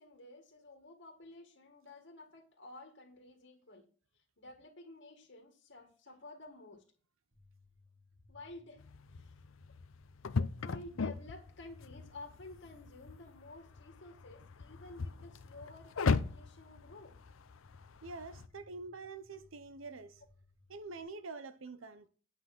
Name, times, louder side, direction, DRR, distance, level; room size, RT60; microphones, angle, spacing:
voice 1, 0.0-3.9 4.1-6.8 8.3-8.8 9.1-9.4 10.6-17.2 19.3-19.5, left 2 dB, 60° left, 1.8 m, -52 dB
sound 1, 7.3-21.0, left 2 dB, 35° right, 3.0 m, -65 dB
sound 2, 8.8-18.5, left 4 dB, 80° left, 0.6 m, -38 dB
voice 2, 18.0-20.2 20.7-22.1, right 3 dB, 75° right, 0.8 m, -46 dB
10.5 x 5.8 x 5.9 m
head